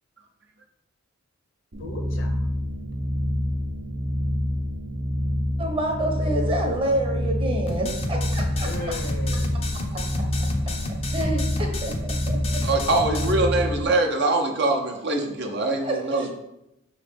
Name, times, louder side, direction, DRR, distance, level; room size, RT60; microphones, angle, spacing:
sound 1, 1.7-13.8, equal, 80° right, 0.9 m, -27 dB
voice 1, 1.8-2.5 8.5-9.7, left 2 dB, 65° left, 3 dB, 1.0 m, -37 dB
voice 2, 5.6-8.9 9.9-10.0 11.1-12.6 15.8-16.0, right 1 dB, 25° right, 1 dB, 1.0 m, -28 dB
sound 2, 7.7-13.3, left 2 dB, 30° left, 0.6 m, -32 dB
voice 3, 12.6-16.3, right 2 dB, 55° right, 2 dB, 0.8 m, -23 dB
5.8 x 3.2 x 5.2 m, 0.87 s
head